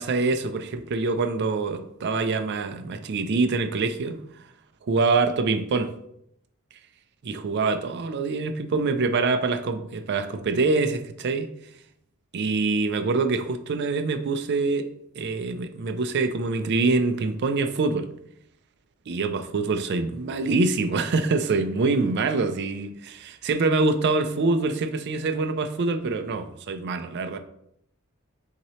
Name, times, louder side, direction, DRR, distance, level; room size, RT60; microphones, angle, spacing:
voice 1, 0.0-4.2 4.8-5.9 7.2-11.5 12.3-14.9 15.2-18.1 19.1-27.4, right 3 dB, 55° right, 8 dB, 0.4 m, -25 dB
5.8 x 2.8 x 3.0 m, 0.74 s
head